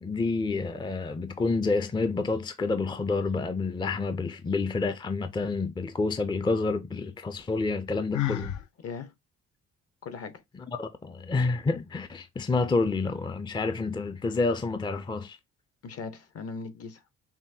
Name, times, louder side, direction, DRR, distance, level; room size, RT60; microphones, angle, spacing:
voice 1, 0.0-8.5 10.7-15.4, left 3 dB, 15° left, 0.5 m, -28 dB
Sigh, 8.1-8.6, left 13 dB, 70° left, 0.6 m, -29 dB
voice 2, 8.8-9.1 10.0-10.4 15.8-17.1, left 4 dB, 55° left, 0.9 m, -39 dB
5.6 x 2.2 x 2.6 m
cardioid pair, 90°, 30 cm